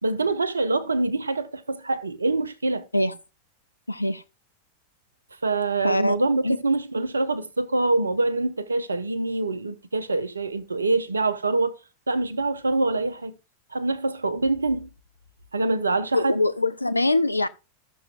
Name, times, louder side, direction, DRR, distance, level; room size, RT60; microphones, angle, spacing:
voice 1, 0.0-2.8 5.4-11.7 12.1-13.3 13.7-14.9 15.5-16.4, right 2 dB, 75° right, 0.6 m, -25 dB
voice 2, 3.9-4.2 5.8-6.2 6.4-6.6 16.1-17.5, left 2 dB, 85° left, 0.4 m, -23 dB
13.5 x 6.2 x 2.4 m
figure-of-eight pair, 90°, 0 cm